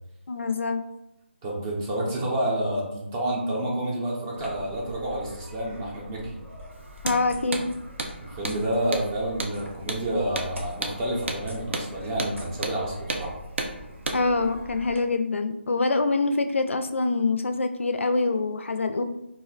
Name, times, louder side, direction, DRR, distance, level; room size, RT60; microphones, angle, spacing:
voice 1, 0.3-0.8 7.0-7.7 14.1-19.0, left 3 dB, 80° left, 8 dB, 0.4 m, -25 dB
voice 2, 1.4-6.4 8.2-13.3, right 1 dB, 15° right, -4 dB, 0.5 m, -29 dB
sound 1, 4.4-15.0, equal, 90° right, 1.1 m, -44 dB
Hammer, 7.0-7.2 7.5-7.7 8.0-8.1 8.4-8.6 8.9-9.1 9.4-9.5 9.9-10.0 10.4-10.5 10.8-11.0 11.3-11.4 11.7-11.9 12.2-12.3 12.6-12.8 13.1-13.2 13.6-13.7 14.1-14.2, right 2 dB, 70° right, 0.5 m, -30 dB
2.4 x 2.0 x 3.9 m, 0.85 s
figure-of-eight pair, 170°, 7 cm